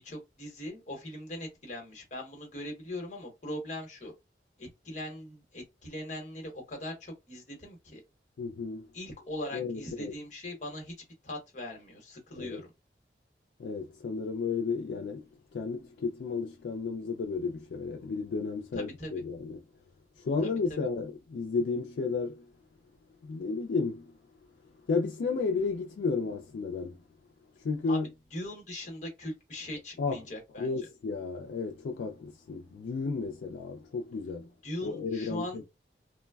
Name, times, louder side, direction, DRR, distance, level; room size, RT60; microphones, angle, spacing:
voice 1, 0.0-4.1 4.6-8.0 8.9-10.9 11.2-12.7 18.7-19.1 20.7-20.8 27.9-28.0 28.3-30.7 34.6-35.6, left 1 dB, 40° left, 1.0 m, -40 dB
voice 2, 8.4-8.9 9.5-10.1 12.4-12.6 13.6-19.6 20.2-22.5 23.2-24.1 24.9-27.0 27.6-28.1 30.0-30.2 30.6-34.5 34.8-35.6, left 4 dB, 75° left, 0.3 m, -33 dB
3.1 x 2.1 x 2.2 m
head